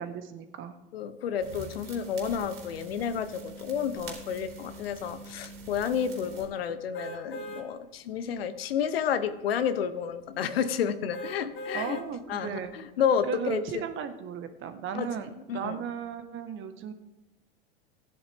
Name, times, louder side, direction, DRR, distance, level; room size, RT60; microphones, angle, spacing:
voice 1, 0.0-0.8 11.7-12.7 13.3-16.9, right 8 dB, 40° right, 9 dB, 1.5 m, -35 dB
voice 2, 0.9-12.0 12.3-13.9 14.9-15.1 15.5-15.8, left 8 dB, 75° left, 12 dB, 1.0 m, -30 dB
sound 1, 1.4-6.4, right 2 dB, 75° right, 3.6 m, -44 dB
sound 2, 6.9-7.7 8.2-8.3 11.1-12.1 12.6-12.7, equal, 40° left, 2.3 m, -39 dB
15.5 x 10.5 x 3.6 m, 1.0 s
hypercardioid pair, 90°, 30 cm